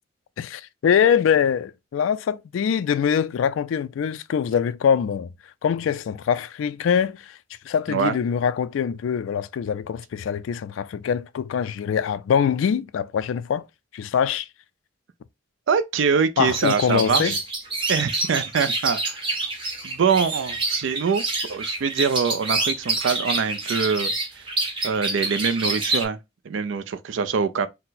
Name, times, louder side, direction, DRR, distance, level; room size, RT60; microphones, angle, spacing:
voice 1, 0.4-5.3 5.6-7.4 7.7-13.6 13.9-14.5 16.4-17.4, left 7 dB, 80° left, 0.3 m, -23 dB
voice 2, 15.7-17.4 17.9-19.2 19.8-21.2 21.5-24.4 24.8-26.2 26.4-27.7, right 6 dB, 65° right, 0.4 m, -24 dB
sound 1, 16.5-26.0, right 2 dB, 25° right, 1.1 m, -27 dB
4.3 x 2.1 x 3.9 m
head